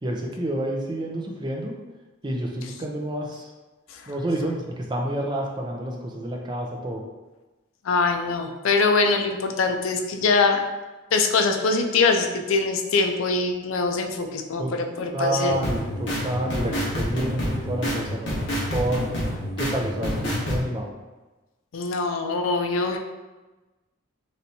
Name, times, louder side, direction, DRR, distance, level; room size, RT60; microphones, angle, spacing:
voice 1, 0.0-1.7 2.2-3.5 4.1-7.0 14.6-14.7 15.1-18.3 18.7-19.1 19.6-20.9, right 1 dB, 20° right, 0 dB, 0.5 m, -29 dB
voice 2, 7.8-10.6 11.1-15.6 21.7-23.0, left 4 dB, 85° left, 5 dB, 0.4 m, -23 dB
sound 1, 15.5-20.6, equal, 65° left, 1.1 m, -28 dB
4.2 x 3.3 x 2.7 m, 1.2 s
head